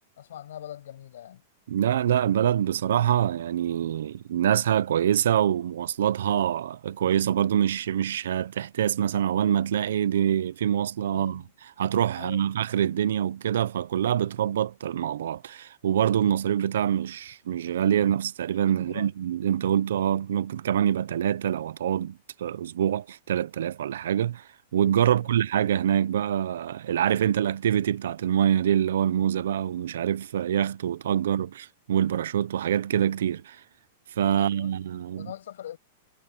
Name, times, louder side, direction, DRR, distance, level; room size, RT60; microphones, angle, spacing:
voice 1, 0.2-1.4 11.1-11.5 12.2-12.4 18.7-19.1 25.1-25.3 31.4-31.5 34.3-34.7 35.2-35.8, left 11 dB, 80° left, 7.7 m, -42 dB
voice 2, 1.7-11.4 11.8-24.4 24.7-33.6 34.2-35.3, right 10 dB, 80° right, 0.8 m, -25 dB
supercardioid pair, 145°, 0 cm